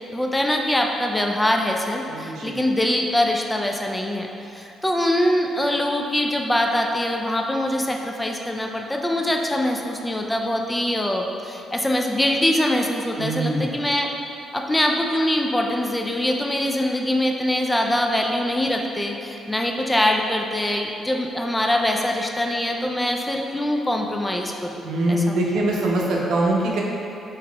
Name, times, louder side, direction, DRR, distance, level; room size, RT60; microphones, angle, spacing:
voice 1, 0.1-4.3 4.5-14.1 14.5-25.4, left 1 dB, 10° left, 1 dB, 0.3 m, -23 dB
voice 2, 2.1-2.7 13.2-13.8 24.8-26.8, right 1 dB, 75° right, -2 dB, 0.6 m, -23 dB
3.8 x 2.8 x 3.3 m, 2.7 s
cardioid pair, 90°, 0 cm